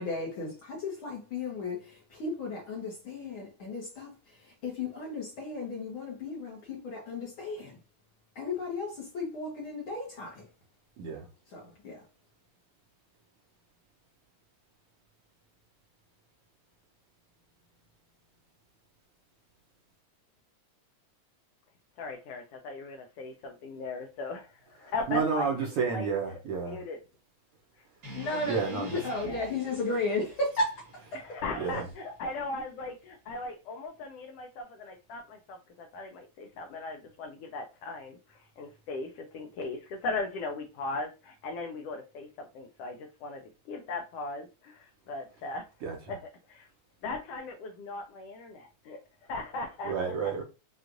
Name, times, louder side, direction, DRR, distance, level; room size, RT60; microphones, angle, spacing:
voice 1, 0.0-7.8 8.3-10.5 11.5-12.0 28.1-31.0, left 2 dB, 60° left, 1.4 m, -34 dB
voice 2, 11.0-11.3 24.8-26.8 28.4-29.3 31.6-31.9 45.8-46.0 49.8-50.4, right 5 dB, 70° right, 1.4 m, -31 dB
voice 3, 22.0-26.1 26.6-27.0 27.8-27.9 28.3-28.9 29.2-29.5 31.1-45.7 46.1-46.2 46.5-46.7 47.0-49.9 50.2-50.3, left 3 dB, 80° left, 1.4 m, -38 dB
sound 1, 28.0-32.2, equal, 45° right, 1.0 m, -48 dB
6.2 x 2.4 x 2.5 m
omnidirectional pair, 3.4 m